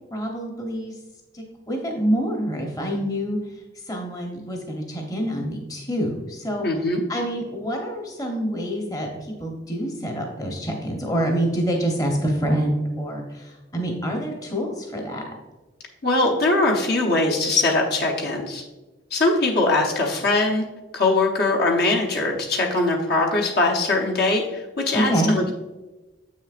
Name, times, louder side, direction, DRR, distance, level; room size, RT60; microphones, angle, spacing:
voice 1, 0.1-0.9 1.3-3.4 3.9-6.7 7.1-15.2 24.9-25.3, equal, 20° left, 1 dB, 0.9 m, -26 dB
voice 2, 6.6-7.0 16.0-18.6 19.1-20.6 20.9-25.5, left 2 dB, 55° left, 0 dB, 0.9 m, -21 dB
7.7 x 6.2 x 2.5 m, 1.1 s
head